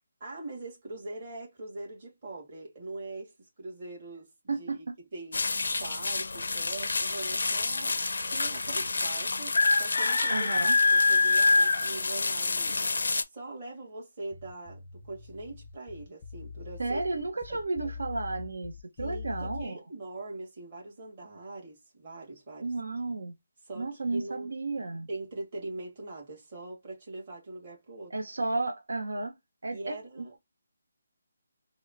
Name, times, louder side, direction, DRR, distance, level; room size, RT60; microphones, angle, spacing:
voice 1, 0.2-4.3 4.6-7.9 8.3-10.5 10.9-17.0 17.5-17.9 19.0-22.7 23.6-24.5 25.1-28.1 29.7-30.4, right 2 dB, 30° right, 1.4 m, -42 dB
sound 1, 5.3-13.2, left 3 dB, 75° left, 0.4 m, -26 dB
voice 2, 10.3-10.8 16.8-19.7 22.6-23.3 23.7-25.1 28.1-29.3 29.6-30.4, right 3 dB, 85° right, 0.7 m, -33 dB
sound 2, 14.3-19.7, left 5 dB, 20° left, 0.5 m, -42 dB
4.3 x 2.0 x 2.5 m
hypercardioid pair, 170°, 0 cm